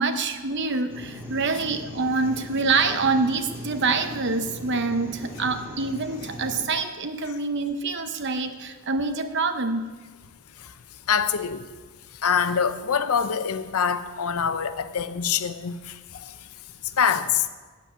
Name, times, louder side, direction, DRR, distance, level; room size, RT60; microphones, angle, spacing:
voice 1, 0.0-9.9, right 4 dB, 50° right, 0.8 m, -26 dB
sound 1, 0.9-6.7, left 1 dB, 10° right, 2.1 m, -39 dB
voice 2, 11.1-11.7 12.2-15.9 16.2-16.3 17.0-17.4, left 7 dB, 80° left, 0.6 m, -24 dB
8.4 x 7.2 x 8.7 m
head